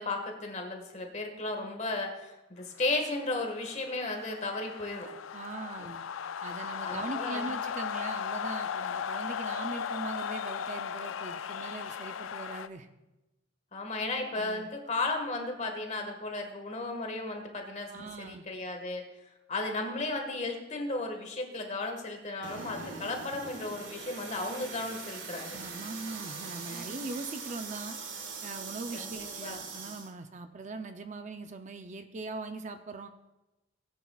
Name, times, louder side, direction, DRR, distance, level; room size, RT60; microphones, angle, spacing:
voice 1, 0.0-5.1 5.8-5.9 6.8-7.5 13.7-19.0 19.5-25.6 26.7-26.9 28.9-29.6, left 2 dB, 35° left, 3 dB, 1.6 m, -35 dB
sound 1, 2.8-12.7, left 7 dB, 90° left, 0.4 m, -37 dB
voice 2, 5.3-6.0 6.4-12.9 14.3-14.7 17.9-18.4 25.5-28.0 28.4-33.1, right 3 dB, 40° right, 7 dB, 0.5 m, -41 dB
sound 2, 22.4-30.1, right 4 dB, 75° right, 1.5 m, -42 dB
18.0 x 9.2 x 2.4 m, 1.0 s
head